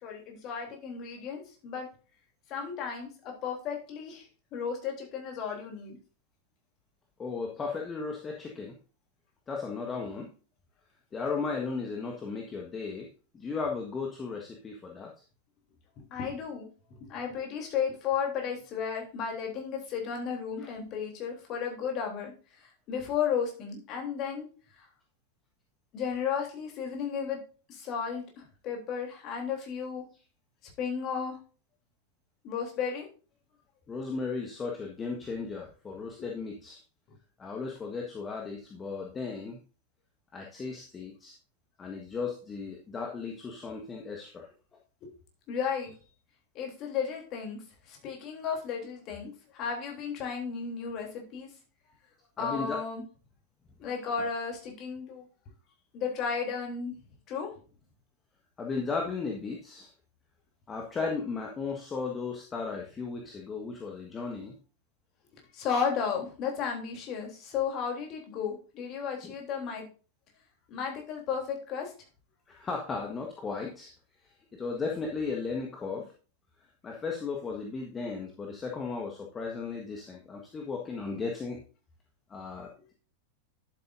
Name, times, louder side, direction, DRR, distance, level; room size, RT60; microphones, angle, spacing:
voice 1, 0.0-1.9 2.5-4.2 4.5-6.0 16.1-22.3 22.9-24.5 25.9-27.4 27.7-30.0 30.8-31.4 32.4-33.1 36.2-36.3 45.0-45.1 45.5-45.9 46.5-47.6 47.9-51.5 52.4-53.0 53.8-55.2 55.9-56.9 57.3-57.5 65.5-69.9 70.7-71.9, left 6 dB, 35° left, 2 dB, 3.3 m, -34 dB
voice 2, 7.2-8.8 9.5-10.3 11.1-13.1 13.3-15.1 20.6-20.7 33.9-36.8 37.4-39.6 40.3-41.3 41.8-44.5 52.4-52.8 58.6-59.9 60.7-64.5 69.2-69.3 72.5-73.9 74.2-76.1 76.8-81.6 82.3-82.9, left 4 dB, 20° left, 0 dB, 1.5 m, -35 dB
11.0 x 8.2 x 2.6 m, 0.36 s
figure-of-eight pair, 90°, 0 cm